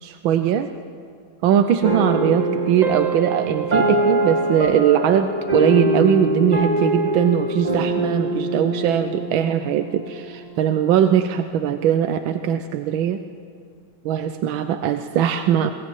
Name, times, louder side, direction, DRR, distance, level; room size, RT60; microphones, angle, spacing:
voice 1, 0.0-0.7 1.4-13.2 14.0-15.7, right 9 dB, 85° right, 8 dB, 1.6 m, -20 dB
sound 1, 1.8-10.4, right 1 dB, 20° right, 1.6 m, -23 dB
21.5 x 16.5 x 9.2 m, 2.3 s
omnidirectional pair, 2.1 m